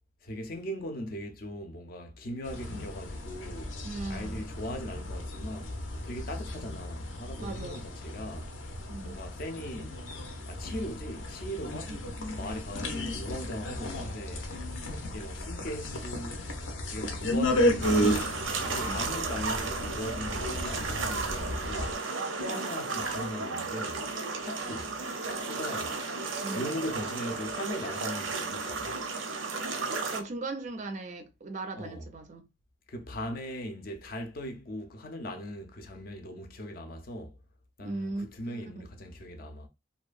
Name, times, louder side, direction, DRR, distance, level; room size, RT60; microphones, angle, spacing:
voice 1, 0.2-3.8 4.1-5.7 6.0-8.5 9.0-10.0 10.5-12.0 12.2-14.5 14.9-16.4 16.9-18.3 18.6-21.9 22.4-24.1 24.4-24.9 25.2-26.0 26.5-29.0 31.8-32.0 32.9-37.4 37.8-39.7, equal, 50° left, 0.5 m, -39 dB
sound 1, 2.4-21.9, left 1 dB, 90° left, 0.6 m, -34 dB
voice 2, 3.8-4.4 7.4-7.9 8.9-9.2 11.8-12.2 18.8-19.1 22.5-22.6 26.4-26.8 30.1-32.5 37.8-38.9, right 2 dB, 40° right, 0.3 m, -39 dB
sound 2, 17.8-30.2, right 4 dB, 90° right, 0.5 m, -34 dB
2.7 x 2.2 x 2.4 m
head